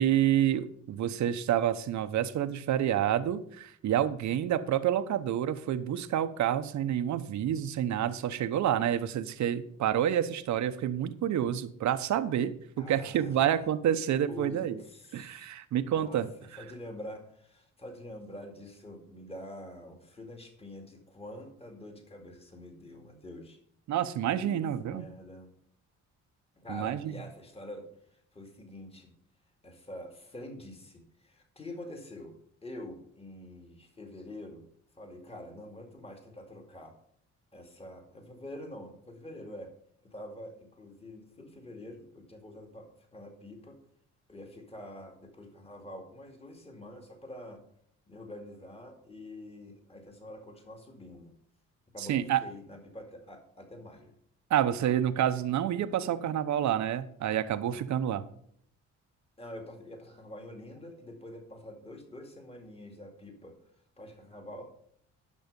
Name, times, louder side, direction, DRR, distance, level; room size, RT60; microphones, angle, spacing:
voice 1, 0.0-14.8 15.1-16.3 23.9-25.1 26.7-27.1 52.0-52.4 54.5-58.2, right 10 dB, 70° right, 11 dB, 0.9 m, -28 dB
voice 2, 12.8-13.7 14.3-15.5 15.8-16.2 16.6-23.6 24.3-25.5 26.6-29.1 29.6-34.7 35.0-37.0 37.5-39.7 40.1-43.8 44.3-47.6 48.1-51.4 51.9-54.1 59.4-63.6 64.0-64.6, left 1 dB, 20° left, 3 dB, 2.2 m, -46 dB
10.5 x 6.3 x 5.4 m, 0.66 s
cardioid pair, 90°, 30 cm